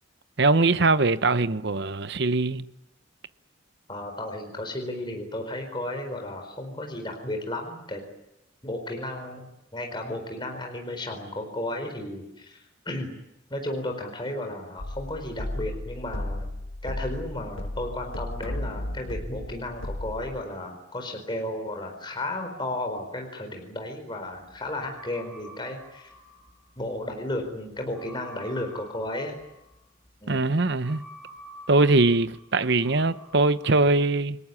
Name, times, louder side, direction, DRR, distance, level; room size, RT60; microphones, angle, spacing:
voice 1, 0.4-2.7 30.3-31.0 31.7-34.4, right 3 dB, 55° right, 0.9 m, -22 dB
voice 2, 3.9-8.0 8.6-9.5 9.7-12.6 12.8-13.1 13.5-16.5 16.8-26.1 26.8-29.4 30.2-30.5, left 1 dB, 20° left, 4.4 m, -33 dB
sound 1, 14.8-20.4, left 1 dB, 75° left, 1.6 m, -34 dB
sound 2, 24.5-33.8, equal, ahead, 7.5 m, -49 dB
29.0 x 19.0 x 9.8 m
head